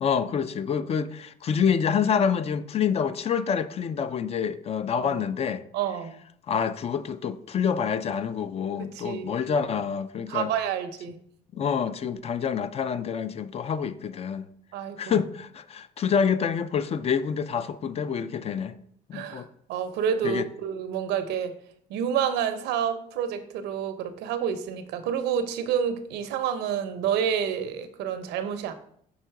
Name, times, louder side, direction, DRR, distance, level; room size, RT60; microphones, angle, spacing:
voice 1, 0.0-5.6 6.5-10.5 11.5-14.5 15.0-18.7 19.1-19.5 20.2-20.4, left 7 dB, 35° left, 0.4 m, -27 dB
voice 2, 5.7-6.2 8.9-9.6 10.3-11.2 14.7-15.1 19.1-19.4 19.7-21.6 21.9-28.7, right 8 dB, 85° right, 0.7 m, -29 dB
5.5 x 3.8 x 4.6 m
cardioid pair, 110°, 17 cm